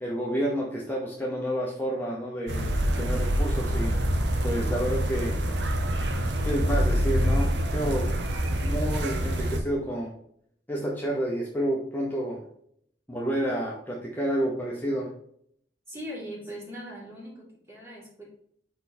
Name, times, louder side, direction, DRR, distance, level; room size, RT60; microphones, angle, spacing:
voice 1, 0.0-3.9 4.4-5.4 6.4-8.1 8.6-10.1 10.7-12.4 13.1-15.1, equal, 10° left, -3 dB, 0.8 m, -30 dB
sound 1, 2.5-9.6, equal, 75° right, 0.7 m, -26 dB
voice 2, 15.9-18.2, equal, 15° right, -4 dB, 2.3 m, -40 dB
5.4 x 4.3 x 4.3 m, 0.68 s
head